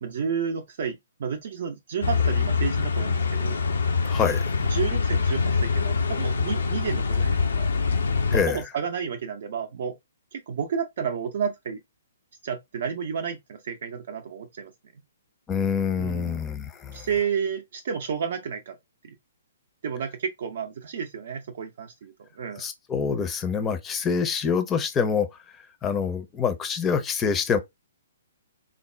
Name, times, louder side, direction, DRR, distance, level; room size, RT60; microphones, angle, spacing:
voice 1, 0.0-3.6 4.6-7.7 8.3-10.0 10.3-11.8 12.4-14.7 16.0-16.4 16.9-18.8 19.0-19.2 19.8-22.6, right 7 dB, 50° right, 0.5 m, -31 dB
sound 1, 2.0-8.4, left 5 dB, 65° left, 0.6 m, -24 dB
voice 2, 4.0-4.4 8.3-8.6 15.5-17.1 22.6-25.3 25.8-27.6, left 6 dB, 15° left, 0.6 m, -26 dB
3.8 x 2.1 x 3.2 m
figure-of-eight pair, 120°, 0 cm